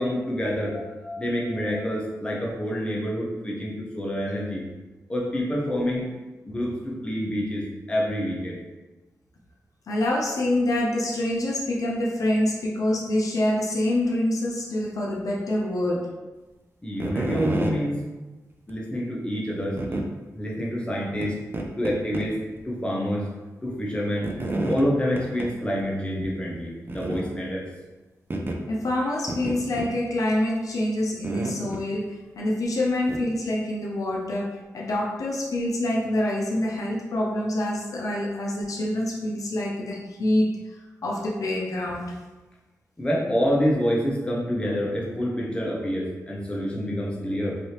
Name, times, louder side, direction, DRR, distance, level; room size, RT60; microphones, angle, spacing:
voice 1, 0.0-4.6 5.1-6.1 6.5-8.6 16.8-18.0 18.7-20.0 20.4-21.4 21.8-22.4 22.6-23.3 23.6-24.3 24.7-27.7 43.0-47.6, equal, 15° left, -4 dB, 0.7 m, -27 dB
voice 2, 9.9-16.1 28.7-40.6 41.0-42.2, left 1 dB, 70° left, -2 dB, 0.5 m, -26 dB
sound 1, 17.0-17.8 18.7-18.8 19.8-20.1 21.2-21.3 21.5-22.3 22.6-22.7 24.2-24.9 25.2-25.5 25.8-25.9 26.2-26.3 26.9-27.3 28.3-28.6 29.3-29.9 31.2-31.8 33.1-33.2, right 2 dB, 35° right, 0.4 m, -29 dB
3.2 x 2.7 x 2.8 m, 1.2 s
wide cardioid pair, 90°, 6 cm